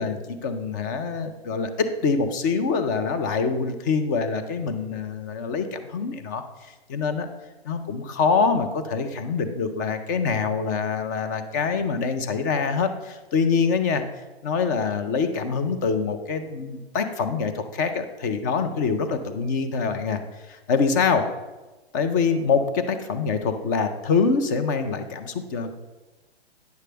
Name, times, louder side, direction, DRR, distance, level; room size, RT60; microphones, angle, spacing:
voice 1, 0.0-7.3 7.6-14.0 14.4-21.3 21.9-25.8, left 5 dB, 20° left, 8 dB, 0.3 m, -25 dB
9.2 x 6.5 x 3.3 m, 1.2 s
hypercardioid pair, 135°, 32 cm